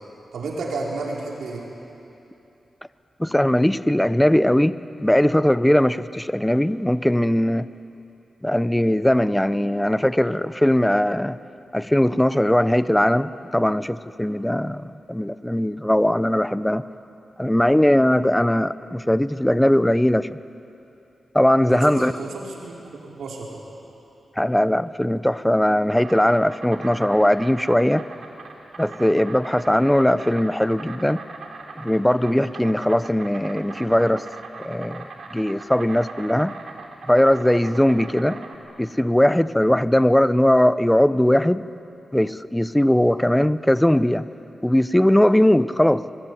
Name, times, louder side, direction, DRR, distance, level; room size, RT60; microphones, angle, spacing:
voice 1, 0.3-1.6 21.7-23.6, right 3 dB, 90° right, -2 dB, 5.1 m, -31 dB
voice 2, 3.2-7.7 8.4-11.4 11.7-16.8 17.4-20.3 21.3-22.1 24.4-28.0 28.8-31.2 31.8-34.3 34.6-36.5 37.1-38.4 38.8-41.6 42.1-44.3 44.6-46.0, left 1 dB, 5° left, 15 dB, 0.6 m, -19 dB
Insect, 25.5-38.6, right 3 dB, 70° right, 3.0 m, -40 dB
24.5 x 22.0 x 9.9 m, 2.9 s
cardioid pair, 85°, 0 cm